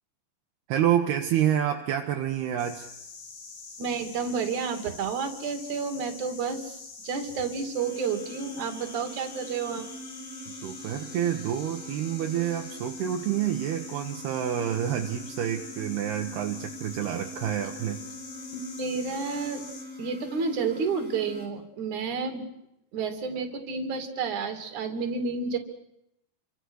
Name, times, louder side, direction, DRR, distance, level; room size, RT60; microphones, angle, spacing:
voice 1, 0.7-2.9 10.6-18.0, right 10 dB, 75° right, 3 dB, 3.2 m, -28 dB
sound 1, 2.6-19.8, left 4 dB, 75° left, 5.9 m, -45 dB
voice 2, 3.8-9.9 18.5-19.7 20.0-22.5 22.9-25.6, right 5 dB, 50° right, 6 dB, 3.9 m, -30 dB
sound 2, 7.7-21.5, equal, ahead, 5.5 m, -43 dB
28.0 x 25.0 x 6.5 m, 0.81 s
omnidirectional pair, 4.9 m